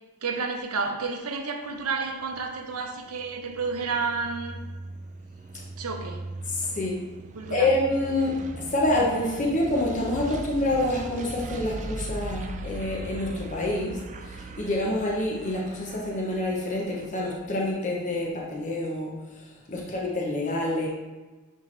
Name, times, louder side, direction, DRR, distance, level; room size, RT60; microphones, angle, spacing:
voice 1, 0.2-4.6 5.8-6.2 7.4-7.7 19.8-19.9, right 4 dB, 85° right, 5 dB, 0.7 m, -31 dB
sound 1, 1.7-17.4, right 2 dB, 35° right, 0.4 m, -40 dB
voice 2, 6.5-7.0 7.5-14.0 14.3-19.1 19.7-20.9, left 1 dB, 35° left, -3 dB, 0.9 m, -27 dB
9.5 x 3.4 x 3.3 m, 1.2 s
head